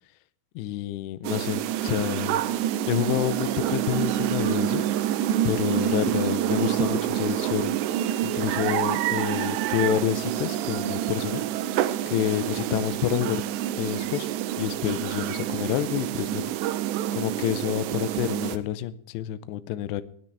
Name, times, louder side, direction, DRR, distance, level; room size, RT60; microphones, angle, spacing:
voice 1, 0.6-2.4 2.9-5.1 5.4-7.7 8.2-11.5 12.1-13.4 13.8-14.3 14.6-16.5 17.2-20.0, left 13 dB, 80° left, 13 dB, 2.5 m, -28 dB
sound 1, 1.2-18.6, right 11 dB, 80° right, 2.6 m, -27 dB
19.0 x 12.0 x 3.4 m, 0.62 s
omnidirectional pair, 5.6 m